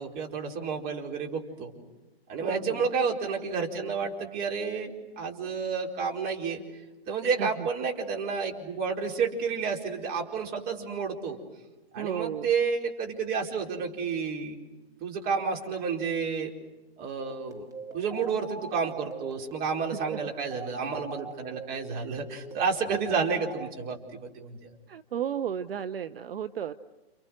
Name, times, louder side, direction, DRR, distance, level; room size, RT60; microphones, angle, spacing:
voice 1, 0.0-1.7 2.3-6.6 7.1-11.4 11.9-14.6 15.0-16.5 17.0-17.7 17.9-24.6, right 5 dB, 30° right, 1 dB, 4.6 m, -30 dB
voice 2, 2.4-2.8 7.4-7.7 12.0-12.5 19.9-20.2 24.9-26.7, right 8 dB, 65° right, 11 dB, 0.9 m, -34 dB
sound 1, 17.3-24.0, right 2 dB, 10° right, 1.6 m, -43 dB
30.0 x 29.5 x 6.4 m, 1.1 s
hypercardioid pair, 125°, 31 cm